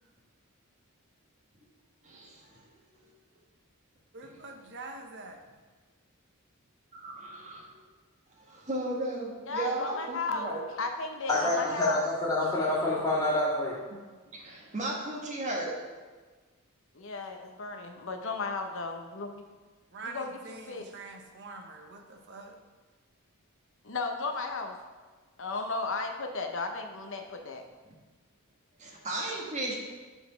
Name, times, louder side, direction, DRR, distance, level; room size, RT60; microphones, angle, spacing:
voice 1, 2.0-2.6 6.9-7.7 8.5-10.6 14.3-15.7 28.8-29.7, right 2 dB, 35° right, -2 dB, 1.5 m, -35 dB
voice 2, 4.1-5.4 19.9-22.6, right 3 dB, 55° right, 4 dB, 0.8 m, -45 dB
voice 3, 9.5-10.5 10.8-12.1 16.9-19.3 20.1-20.9 23.8-24.8 25.4-27.6, left 3 dB, 60° left, 4 dB, 0.8 m, -35 dB
voice 4, 11.3-13.8, left 2 dB, 15° left, -13 dB, 1.9 m, -27 dB
7.0 x 4.2 x 5.7 m, 1.3 s
head